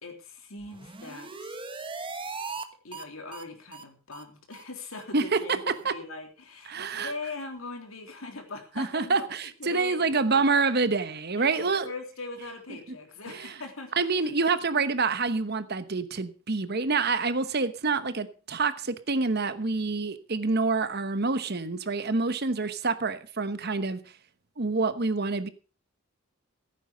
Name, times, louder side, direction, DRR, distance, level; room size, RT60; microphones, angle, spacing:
voice 1, 0.0-1.6 2.8-10.4 11.3-13.9 14.2-14.3 14.7-14.9, left 3 dB, 85° left, 3.5 m, -41 dB
sound 1, 0.6-2.6 2.9-3.0 3.3-3.4 3.7-3.8 4.1-4.2 4.5-4.6 4.9-5.0 5.3-5.4 5.7-5.8, right 4 dB, 25° right, 1.1 m, -39 dB
voice 2, 6.7-7.1 8.8-11.9 13.4-13.5 14.0-24.0 24.6-25.5, right 4 dB, 50° right, 1.1 m, -27 dB
15.5 x 9.0 x 5.2 m
head